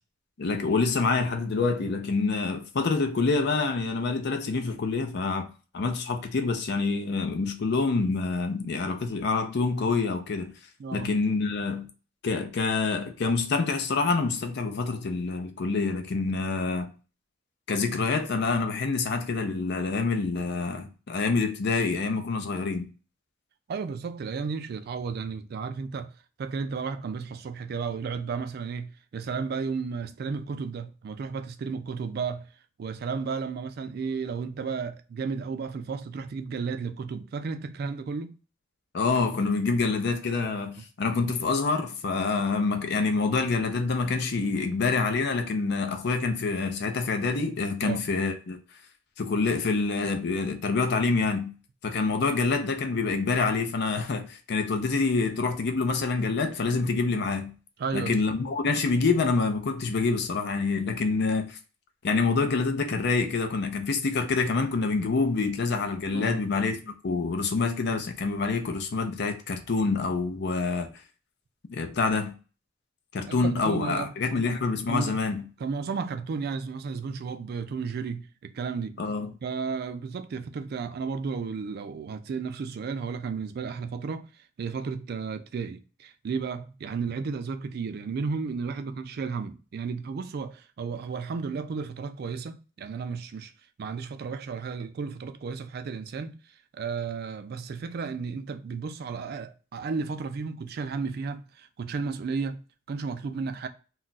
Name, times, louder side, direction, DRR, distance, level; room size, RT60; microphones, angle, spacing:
voice 1, 0.4-5.5 5.7-10.5 10.9-11.9 12.2-16.9 17.7-22.9 38.9-48.6 49.2-51.5 51.8-57.5 57.9-61.6 62.0-70.9 71.7-72.3 73.1-75.4 79.0-79.3, left 4 dB, 55° left, 0.5 m, -26 dB
voice 2, 10.8-11.1 23.7-26.1 26.4-32.5 32.8-38.4 47.8-48.0 57.8-58.2 66.1-66.4 73.3-74.5 74.9-75.2 75.6-79.0 79.4-93.5 93.8-102.6 102.9-103.7, right 5 dB, 55° right, 0.3 m, -33 dB
2.3 x 2.2 x 3.8 m
head